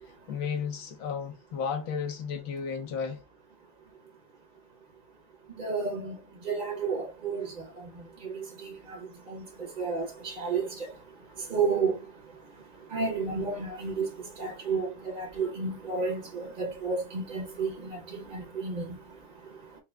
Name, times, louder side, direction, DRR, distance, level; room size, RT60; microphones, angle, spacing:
voice 1, 0.3-3.2, left 6 dB, 70° left, 1.6 m, -33 dB
voice 2, 5.5-19.8, right 4 dB, 30° right, 1.0 m, -33 dB
4.8 x 2.2 x 3.6 m
omnidirectional pair, 2.4 m